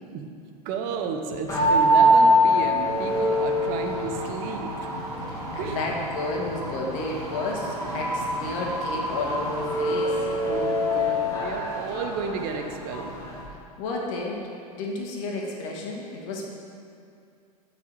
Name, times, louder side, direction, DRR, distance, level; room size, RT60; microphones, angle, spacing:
voice 1, 0.6-4.9 5.6-5.8 10.4-13.1, right 5 dB, 45° right, 4 dB, 1.0 m, -32 dB
sound 1, 1.5-13.4, equal, 15° left, 2.4 m, -25 dB
Wind, 2.4-10.5, right 1 dB, 85° right, 1.2 m, -35 dB
voice 2, 5.3-10.3 13.8-16.6, left 2 dB, 55° left, -1 dB, 1.8 m, -32 dB
7.0 x 6.3 x 6.7 m, 2.4 s
hypercardioid pair, 95°, 20 cm